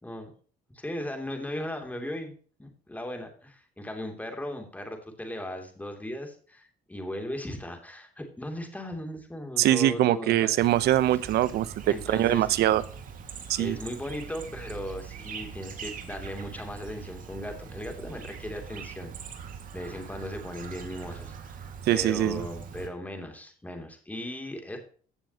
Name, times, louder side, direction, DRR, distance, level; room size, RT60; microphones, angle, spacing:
voice 1, 0.7-10.5 11.8-12.5 13.6-19.1 19.7-21.6 21.9-24.8, left 1 dB, 10° left, 4 dB, 2.9 m, -37 dB
voice 2, 9.6-12.8 13.5-13.8 21.9-22.4, right 13 dB, 75° right, 16 dB, 0.8 m, -23 dB
Chirp tweet, 10.6-22.9, right 6 dB, 55° right, 2.0 m, -42 dB
16.0 x 7.0 x 2.9 m, 0.42 s
cardioid pair, 110°, 17 cm